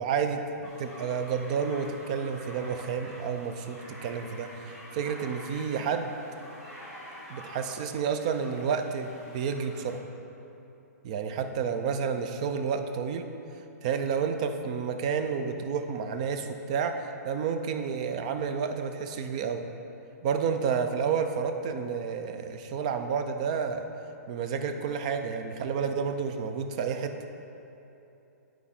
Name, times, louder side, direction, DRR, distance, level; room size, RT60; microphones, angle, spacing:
voice 1, 0.0-6.1 7.3-10.0 11.0-13.3 13.8-19.7 20.2-23.9 24.3-27.1, right 6 dB, 25° right, 7 dB, 0.4 m, -30 dB
sound 1, 0.6-10.0, equal, 5° right, 1.7 m, -47 dB
10.5 x 4.5 x 4.3 m, 2.9 s
hypercardioid pair, 170°, 9 cm